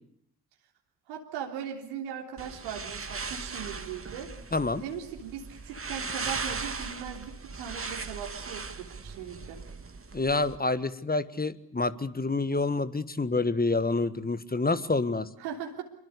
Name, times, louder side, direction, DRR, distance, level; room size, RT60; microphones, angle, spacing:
voice 1, 1.1-4.3 4.8-9.6 15.4-15.8, right 8 dB, 75° right, 0 dB, 3.5 m, -39 dB
sound 1, 2.4-10.6, right 4 dB, 25° right, 2.4 m, -38 dB
voice 2, 4.5-4.8 10.1-15.3, left 3 dB, 20° left, 14 dB, 1.6 m, -28 dB
26.5 x 23.5 x 8.3 m, 0.72 s
figure-of-eight pair, 40°, 49 cm